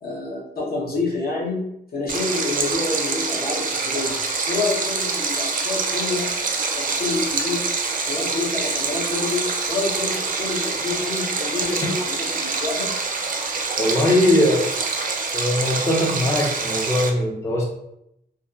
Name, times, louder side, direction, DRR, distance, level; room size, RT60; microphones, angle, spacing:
voice 1, 0.0-4.1 4.5-6.3 6.7-7.6 8.0-12.9, left 3 dB, 60° left, -4 dB, 0.8 m, -28 dB
Stream, 2.1-17.1, right 4 dB, 50° right, 0.4 m, -26 dB
voice 2, 13.8-14.8 15.3-17.6, left 1 dB, 15° left, -1 dB, 0.4 m, -20 dB
2.7 x 2.3 x 2.4 m, 0.80 s
wide cardioid pair, 150°, 18 cm